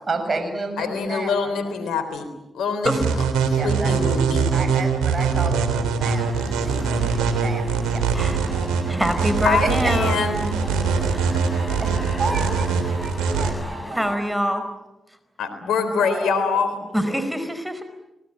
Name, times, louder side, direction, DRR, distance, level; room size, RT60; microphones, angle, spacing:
voice 1, 0.1-1.5 3.5-3.9 4.5-6.2 6.5-8.0 8.9-9.1 9.6-9.9 10.3-10.4 11.0-11.1 11.8-11.9 12.2-14.5 16.0-16.4 16.9-17.2, right 3 dB, 45° right, 6 dB, 7.6 m, -31 dB
voice 2, 0.8-2.3 2.5-2.9 3.4-4.5 9.4-10.4 15.4-16.8, left 5 dB, 80° left, 9 dB, 3.7 m, -24 dB
sound 1, 2.8-13.5, right 5 dB, 90° right, 3.2 m, -22 dB
sound 2, 6.0-14.2, left 1 dB, 15° left, 6.3 m, -37 dB
voice 3, 8.9-10.2 10.9-11.2 13.9-14.6 16.9-17.8, equal, 10° right, 10 dB, 4.8 m, -24 dB
28.5 x 19.5 x 9.0 m, 0.95 s
supercardioid pair, 40°, 0 cm